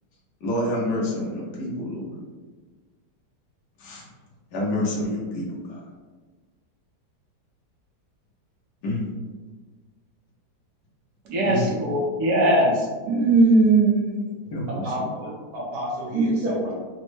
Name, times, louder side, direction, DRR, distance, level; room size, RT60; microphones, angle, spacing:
voice 1, 0.4-2.1 3.8-4.0 4.5-5.8 8.8-9.1 11.4-11.7 14.5-15.1, left 1 dB, 85° left, -4 dB, 1.5 m, -28 dB
voice 2, 11.3-12.8 13.1-14.3 16.1-16.5, right 2 dB, 70° right, -2 dB, 1.2 m, -19 dB
voice 3, 14.7-16.7, equal, 40° right, -6 dB, 1.1 m, -31 dB
4.1 x 2.1 x 3.1 m, 1.3 s
omnidirectional pair, 1.8 m